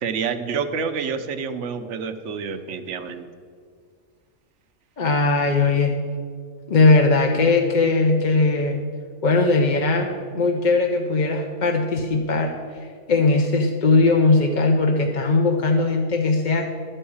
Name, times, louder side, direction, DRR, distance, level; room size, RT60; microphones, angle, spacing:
voice 1, 0.0-3.2, right 6 dB, 65° right, 9 dB, 1.0 m, -28 dB
voice 2, 5.0-5.9 6.7-8.8 9.2-16.7, left 3 dB, 45° left, 3 dB, 0.8 m, -19 dB
12.0 x 5.5 x 8.6 m, 2.1 s
omnidirectional pair, 1.4 m